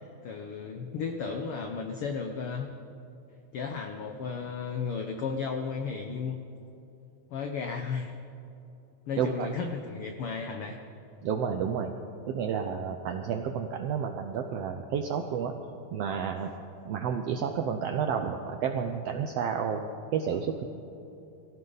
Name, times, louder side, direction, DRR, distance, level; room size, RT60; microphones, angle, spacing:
voice 1, 0.2-2.7 3.5-6.4 7.3-8.1 9.1-10.8, left 5 dB, 80° left, 4 dB, 1.2 m, -34 dB
voice 2, 9.2-9.5 11.2-11.9 12.3-15.5 15.9-16.5 16.8-20.6, right 7 dB, 80° right, 5 dB, 1.4 m, -31 dB
23.5 x 15.0 x 4.0 m, 3.0 s
omnidirectional pair, 3.7 m